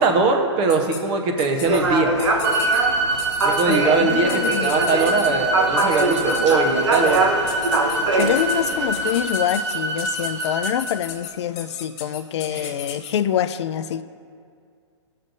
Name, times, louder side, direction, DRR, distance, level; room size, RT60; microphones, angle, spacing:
voice 1, 0.0-2.2 3.4-7.3 12.5-12.7, right 3 dB, 35° right, 4 dB, 0.9 m, -21 dB
sound 1, 0.7-1.0 1.4-1.8 2.2-2.8 3.2-3.8 4.3-5.3 5.8-6.5 6.9-7.2 7.5-13.1, left 9 dB, 35° left, 1.4 m, -35 dB
sound 2, 1.6-9.2, right 3 dB, 80° right, 1.1 m, -23 dB
sound 3, 2.4-10.7, right 1 dB, 15° right, 1.2 m, -25 dB
voice 2, 3.7-5.0 5.3-5.4 8.2-14.0, left 10 dB, 65° left, 11 dB, 0.4 m, -26 dB
16.0 x 6.5 x 2.6 m, 2.3 s
hypercardioid pair, 135°, 15 cm